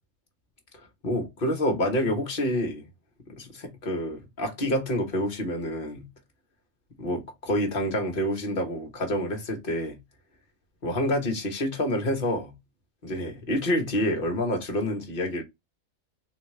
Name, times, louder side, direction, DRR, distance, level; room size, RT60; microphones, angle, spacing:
voice 1, 1.0-2.8 3.3-6.1 7.0-10.0 10.8-12.6 13.0-15.4, left 1 dB, 45° left, 1.2 m, -28 dB
4.0 x 2.3 x 3.1 m
omnidirectional pair, 1.4 m